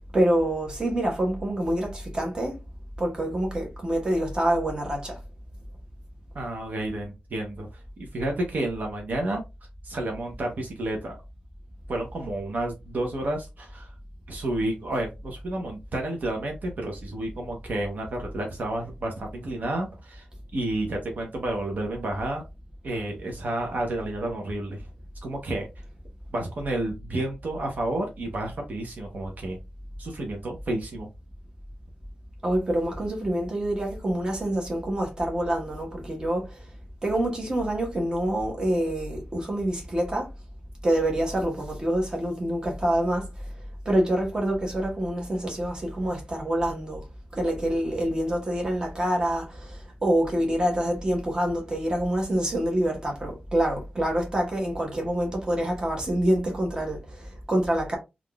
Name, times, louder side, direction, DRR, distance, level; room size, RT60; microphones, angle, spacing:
voice 1, 0.1-2.5 3.0-5.1 32.4-36.4 37.0-40.2 40.8-43.2 43.9-47.0 47.4-49.4 50.0-57.0 57.5-58.0, right 1 dB, 25° right, 1.1 m, -26 dB
voice 2, 6.3-7.7 8.0-9.4 9.8-11.2 11.9-13.9 14.3-20.2 20.5-22.4 22.8-24.8 25.2-25.7 26.3-29.6 30.0-31.1, right 1 dB, 65° right, 0.7 m, -30 dB
3.5 x 2.4 x 2.3 m
wide cardioid pair, 135°, 3 cm